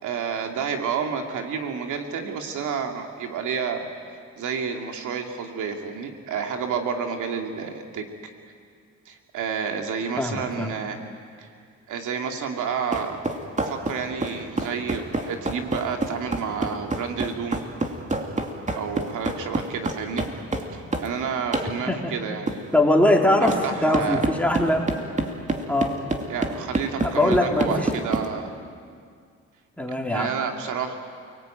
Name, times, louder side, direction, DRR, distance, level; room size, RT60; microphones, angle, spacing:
voice 1, 0.0-8.0 9.1-11.0 11.4-11.5 11.9-13.2 13.6-17.6 18.7-20.3 20.7-22.5 23.4-24.2 26.3-28.5 29.9-31.0, right 6 dB, 80° right, 4 dB, 2.6 m, -30 dB
voice 2, 10.2-10.7 21.9-22.1 22.7-24.8 25.7-25.9 27.0-27.9 29.8-30.3, left 1 dB, 5° left, 1 dB, 3.7 m, -21 dB
sound 1, 12.9-21.1 21.5-21.7 22.5-22.6 23.5-23.6 23.9-28.3, right 2 dB, 25° right, 2.8 m, -27 dB
29.0 x 19.0 x 9.2 m, 2.1 s
cardioid pair, 90°, 30 cm